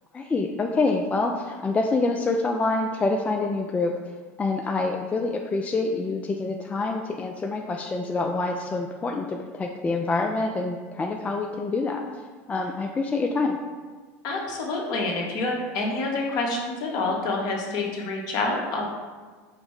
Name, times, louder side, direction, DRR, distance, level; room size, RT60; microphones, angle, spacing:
voice 1, 0.1-3.9 4.4-12.0 12.5-13.6, left 3 dB, 15° left, 2 dB, 0.3 m, -26 dB
voice 2, 14.2-18.9, left 2 dB, 55° left, -1 dB, 1.1 m, -27 dB
5.0 x 2.1 x 4.8 m, 1.4 s
hypercardioid pair, 100°, 8 cm